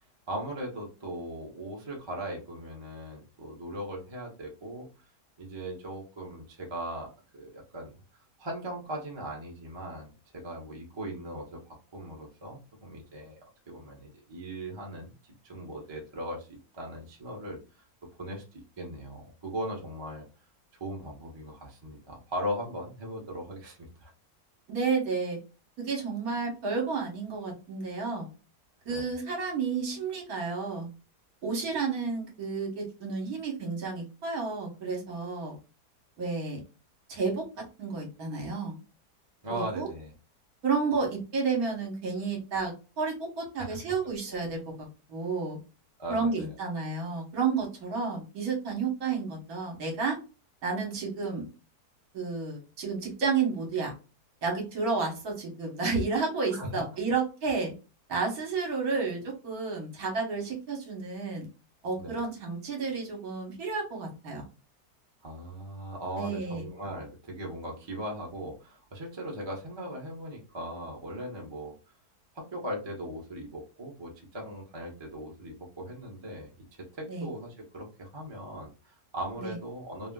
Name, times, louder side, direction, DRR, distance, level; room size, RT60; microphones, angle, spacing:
voice 1, 0.3-4.9 5.4-7.9 8.4-13.4 13.7-16.5 16.7-17.6 18.2-20.3 20.8-24.1 28.9-29.1 39.4-40.1 43.6-43.8 46.0-46.5 56.5-56.8 62.0-62.2 65.2-71.8 72.3-76.5 76.8-80.1, right 1 dB, 25° right, -1 dB, 0.6 m, -39 dB
voice 2, 24.7-25.4 25.8-28.3 28.9-30.9 31.4-35.5 36.2-36.6 37.1-37.4 37.8-38.8 39.5-39.9 40.6-44.7 45.1-45.6 46.1-50.2 50.6-51.5 52.1-53.9 54.4-57.7 58.1-61.5 61.8-64.4 66.2-66.6 77.1-77.3 79.4-79.6, right 4 dB, 65° right, 0 dB, 1.4 m, -31 dB
3.2 x 2.4 x 2.2 m, 0.31 s
omnidirectional pair, 1.8 m